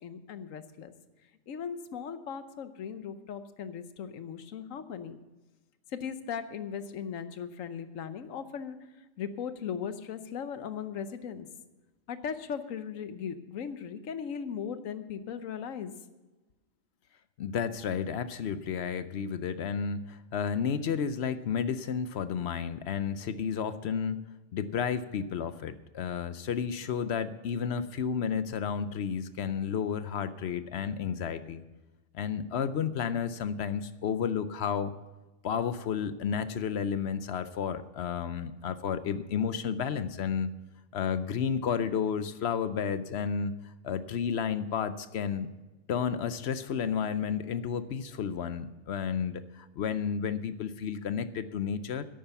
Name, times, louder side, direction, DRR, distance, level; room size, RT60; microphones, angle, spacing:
voice 1, 0.0-0.9 1.5-5.2 5.9-8.8 9.2-11.5 12.1-15.9, left 7 dB, 85° left, 11 dB, 1.2 m, -38 dB
voice 2, 17.4-24.2 24.5-31.6 32.1-34.9 35.4-40.5 40.9-45.5 45.9-52.1, left 7 dB, 65° left, 13 dB, 0.8 m, -32 dB
11.0 x 8.7 x 7.0 m, 1.1 s
omnidirectional pair, 1.3 m